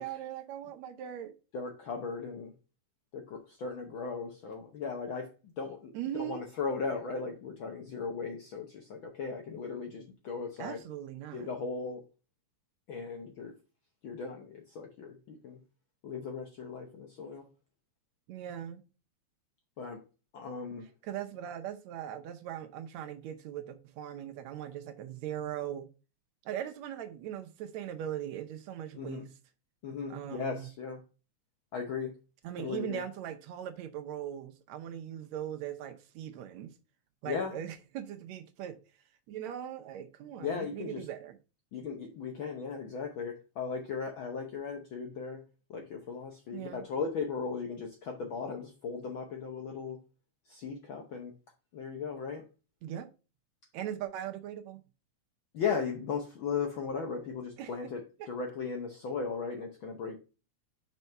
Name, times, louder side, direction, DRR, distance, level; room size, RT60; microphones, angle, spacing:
voice 1, 0.0-1.3 5.9-6.4 10.6-11.5 18.3-18.8 21.0-25.9 26.4-29.3 30.1-30.7 32.4-36.8 37.2-38.8 39.3-41.4 46.5-46.9 52.8-53.1 53.7-54.8 57.6-57.7 58.2-58.3, right 10 dB, 75° right, 1.9 m, -40 dB
voice 2, 1.5-2.5 3.1-5.9 6.1-10.8 11.3-12.0 12.9-13.5 14.0-15.6 16.0-17.4 19.8-20.0 20.3-20.9 28.9-29.2 29.8-31.0 31.7-32.1 32.6-33.0 37.3-37.6 40.4-41.0 41.7-45.4 45.7-50.0 50.5-51.3 51.7-52.4 55.5-60.2, left 5 dB, 65° left, 1.2 m, -37 dB
5.6 x 4.6 x 5.3 m
omnidirectional pair, 3.3 m